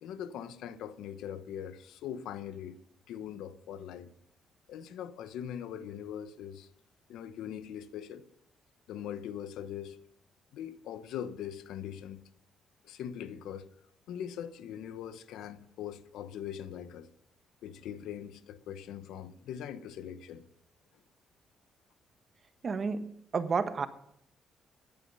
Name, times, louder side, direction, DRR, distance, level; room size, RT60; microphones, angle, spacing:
voice 1, 0.0-2.8 3.1-4.1 4.7-6.7 7.1-8.2 8.9-10.0 10.5-12.2 12.8-13.7 14.1-17.1 17.6-20.4, left 9 dB, 85° left, 1.0 m, -41 dB
voice 2, 22.6-23.9, right 5 dB, 45° right, 1.3 m, -31 dB
15.5 x 10.5 x 5.5 m
cardioid pair, 90°, 0 cm